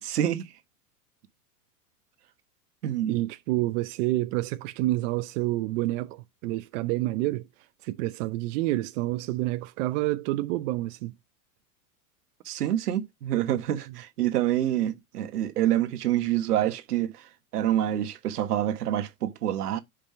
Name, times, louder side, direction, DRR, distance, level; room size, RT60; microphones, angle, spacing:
voice 1, 0.0-0.4 2.8-3.2 12.4-17.1 17.5-19.8, right 12 dB, 85° right, 1.4 m, -27 dB
voice 2, 3.1-7.5 7.8-11.1 13.9-14.0, right 17 dB, 55° right, 0.7 m, -28 dB
5.3 x 5.1 x 5.8 m
supercardioid pair, 125°, 45 cm